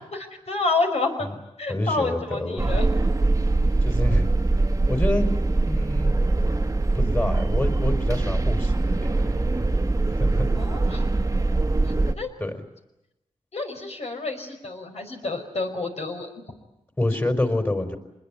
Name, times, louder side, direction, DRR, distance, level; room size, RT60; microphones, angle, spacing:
voice 1, 0.1-1.3 1.6-2.9 10.6-11.0 12.1-12.3 13.5-16.3, left 3 dB, 60° left, 4 dB, 5.4 m, -28 dB
voice 2, 1.7-2.8 3.8-4.3 4.9-5.3 5.7-6.2 6.9-9.7 10.1-10.5 12.4-12.5 17.0-18.0, left 1 dB, 20° left, 6 dB, 4.4 m, -27 dB
sound 1, 2.6-12.1, right 2 dB, 25° right, 1.4 m, -22 dB
26.0 x 21.0 x 9.9 m, 0.91 s
wide cardioid pair, 70°, 12 cm